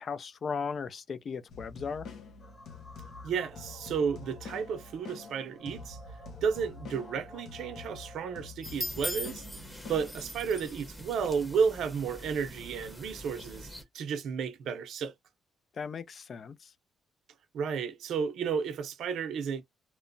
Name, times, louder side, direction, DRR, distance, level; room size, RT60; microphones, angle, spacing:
voice 1, 0.0-2.1 15.8-16.7, left 5 dB, 50° left, 0.4 m, -37 dB
sound 1, 1.5-10.6, left 4 dB, 70° left, 0.8 m, -47 dB
sound 2, 2.4-8.6, left 1 dB, 35° left, 1.4 m, -52 dB
voice 2, 3.2-6.0 6.4-9.4 9.9-15.1 17.5-19.6, right 6 dB, 75° right, 0.5 m, -32 dB
sound 3, 8.6-13.8, left 1 dB, 5° left, 0.9 m, -41 dB
2.8 x 2.1 x 2.5 m
cardioid pair, 90°, 0 cm